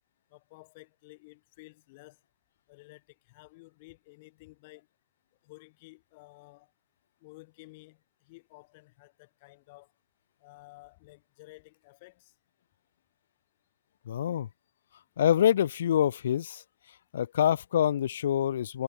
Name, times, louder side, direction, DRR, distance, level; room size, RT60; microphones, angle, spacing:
voice 1, 0.3-2.2 2.7-3.0 3.3-4.9 5.4-6.7 7.2-8.0 8.2-9.9 10.4-12.3, left 23 dB, 35° left, 4.7 m, -53 dB
voice 2, 14.1-14.5 15.2-16.6 17.1-18.8, left 10 dB, 50° left, 0.6 m, -26 dB
figure-of-eight pair, 125°, 0 cm